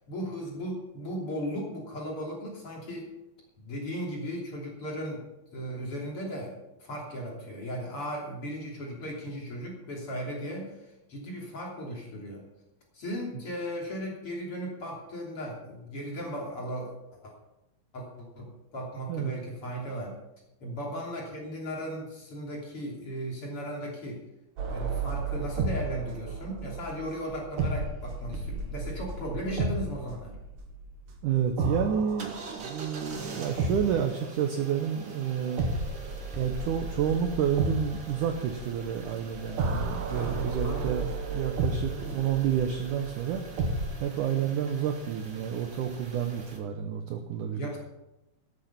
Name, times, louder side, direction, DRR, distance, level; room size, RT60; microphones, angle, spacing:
voice 1, 0.1-3.1 3.6-5.2 5.5-6.5 6.8-12.4 12.9-16.9 17.2-17.3 17.9-20.2 20.6-24.2 24.7-30.3 40.1-41.1 42.0-42.2 47.5-47.8, equal, 35° left, -2 dB, 3.4 m, -36 dB
sound 1, 24.6-34.4 35.6-44.0, right 3 dB, 60° right, 3.1 m, -33 dB
voice 2, 31.2-35.7 36.4-43.4 44.0-47.8, right 8 dB, 85° right, 5 dB, 1.8 m, -30 dB
sound 2, 32.2-46.6, right 3 dB, 40° right, 1.7 m, -45 dB
13.5 x 9.5 x 5.8 m, 0.92 s
omnidirectional pair, 4.9 m